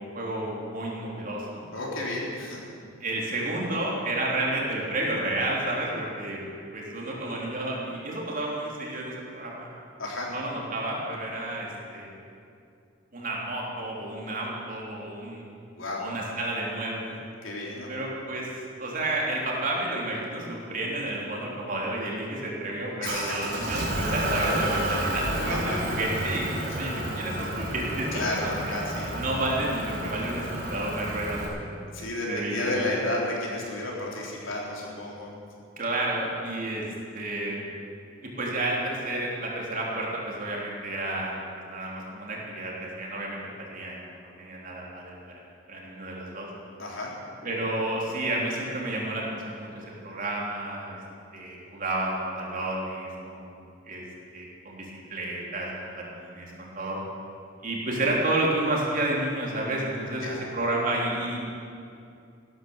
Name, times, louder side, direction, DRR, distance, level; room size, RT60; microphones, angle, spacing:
voice 1, 0.0-1.6 3.0-6.4 6.7-9.7 10.3-12.1 13.1-15.4 16.0-17.1 17.9-18.5 18.8-28.7 29.1-31.7 32.3-32.8 35.8-36.8 37.1-37.6 38.4-41.4 41.6-45.1 45.7-46.5 47.4-51.0 51.3-54.0 54.3-57.0 57.6-61.4, right 1 dB, 40° right, -3 dB, 3.4 m, -31 dB
voice 2, 1.7-2.6 10.0-10.3 15.8-16.1 17.4-18.1 23.0-23.4 25.5-25.9 28.1-29.1 31.9-35.3 46.8-47.1 60.2-60.4, left 2 dB, 75° left, -3 dB, 3.8 m, -32 dB
Motor vehicle (road) / Engine, 23.0-31.5, right 1 dB, 60° right, 3.9 m, -31 dB
15.5 x 13.0 x 7.2 m, 2.5 s
head